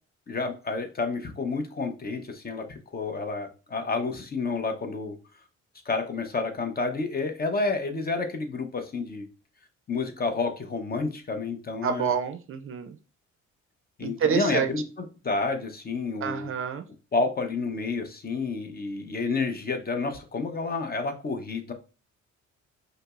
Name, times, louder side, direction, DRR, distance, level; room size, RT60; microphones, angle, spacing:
voice 1, 0.3-5.1 5.9-9.2 9.9-12.1 14.0-16.5 17.1-21.7, left 3 dB, 30° left, 6 dB, 0.6 m, -30 dB
voice 2, 11.8-13.0 14.0-14.7 16.2-16.8, right 7 dB, 45° right, 9 dB, 0.4 m, -28 dB
5.1 x 2.0 x 2.3 m, 0.33 s
cardioid pair, 90°, 30 cm